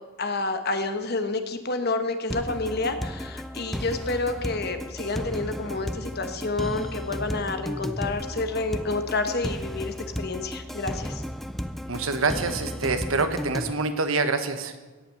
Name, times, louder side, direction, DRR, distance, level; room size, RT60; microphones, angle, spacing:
voice 1, 0.2-11.2, left 3 dB, 50° left, 8 dB, 1.2 m, -29 dB
sound 1, 2.3-13.7, equal, ahead, 0.4 m, -34 dB
voice 2, 11.9-14.7, right 3 dB, 75° right, 9 dB, 1.1 m, -26 dB
17.0 x 5.9 x 7.7 m, 1.3 s
head